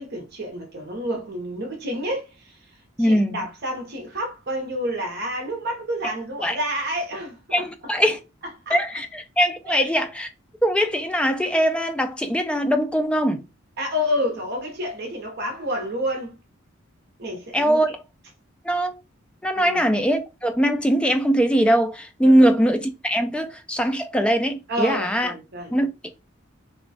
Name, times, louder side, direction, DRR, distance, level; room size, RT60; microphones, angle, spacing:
voice 1, 0.0-2.6 3.0-7.7 8.7-8.8 9.7-9.9 13.8-16.3 17.2-17.8 19.6-19.9 22.2-22.5 24.7-25.8, equal, 55° right, 0.8 m, -29 dB
voice 2, 3.0-3.4 6.0-6.1 6.4-6.6 7.5-8.2 8.7-10.3 10.6-13.4 17.5-17.9 18.6-19.0 19.4-25.3 25.7-26.1, equal, 5° left, 0.3 m, -21 dB
3.0 x 2.2 x 2.6 m
head